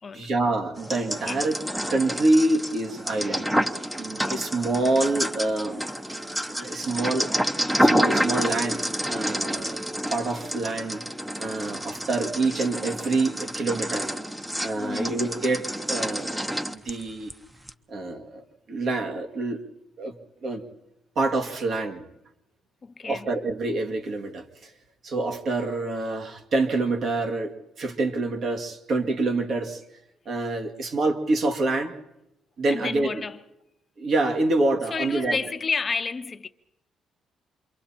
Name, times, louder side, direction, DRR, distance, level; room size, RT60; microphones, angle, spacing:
voice 1, 0.1-1.6 1.9-3.5 4.0-5.9 6.5-7.4 7.8-9.8 10.1-11.0 11.4-14.1 14.6-17.3 17.9-18.4 18.7-19.6 20.0-20.1 20.4-20.6 21.2-22.1 23.0-24.7 25.0-29.8 30.3-31.9 32.6-33.2 34.0-35.4, right 2 dB, 55° right, 2.3 m, -26 dB
sound 1, 0.8-17.3 17.7-17.8, equal, 10° right, 0.8 m, -29 dB
voice 2, 14.7-15.2 22.8-23.3 32.7-33.4 34.9-36.5, left 5 dB, 35° left, 0.7 m, -31 dB
28.0 x 23.5 x 4.4 m
cardioid pair, 110°, 0 cm